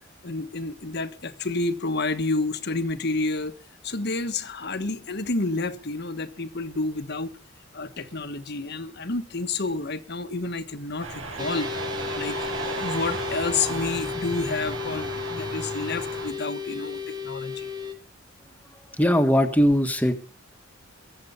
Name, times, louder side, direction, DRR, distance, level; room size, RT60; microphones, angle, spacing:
voice 1, 0.2-3.5 3.8-7.3 7.7-11.7 12.1-17.7, left 3 dB, 55° left, 1.3 m, -29 dB
sound 1, 11.0-16.3, right 3 dB, 80° right, 7.1 m, -34 dB
sound 2, 11.4-17.9, left 6 dB, 20° right, 1.6 m, -33 dB
voice 2, 19.0-20.1, equal, 10° left, 1.6 m, -20 dB
22.5 x 7.9 x 5.6 m
head